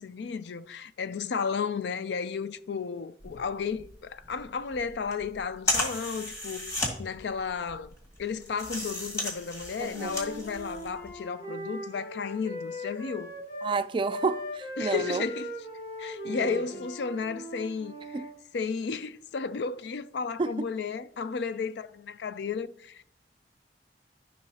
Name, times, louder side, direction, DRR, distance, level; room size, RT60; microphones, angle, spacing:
voice 1, 0.0-6.7 7.0-13.3 14.8-15.5 16.0-18.2 18.5-23.0, left 5 dB, 70° left, 0.4 m, -33 dB
sound 1, 3.2-11.1, left 1 dB, 20° left, 1.9 m, -35 dB
voice 2, 9.8-10.2 13.6-15.3 16.3-16.6 18.1-18.3 20.4-20.7, right 4 dB, 30° right, 0.3 m, -30 dB
Wind instrument woodwind instrument, 9.9-13.8 14.0-18.3, equal, 55° left, 3.3 m, -39 dB
13.5 x 5.5 x 2.8 m
head